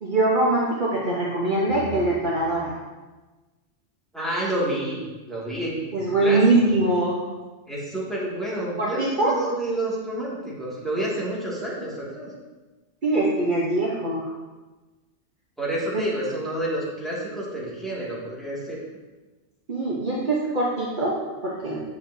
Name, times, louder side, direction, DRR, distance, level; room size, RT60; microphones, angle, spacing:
voice 1, 0.0-2.8 5.9-7.2 8.8-9.3 13.0-14.3 15.9-16.0 19.7-21.1 21.4-21.8, right 2 dB, 45° right, -5 dB, 1.1 m, -22 dB
voice 2, 4.1-5.0 5.3-6.4 6.7-6.8 7.7-12.3 15.6-18.8, right 1 dB, ahead, -8 dB, 2.1 m, -29 dB
8.3 x 7.0 x 2.7 m, 1.2 s
omnidirectional pair, 1.2 m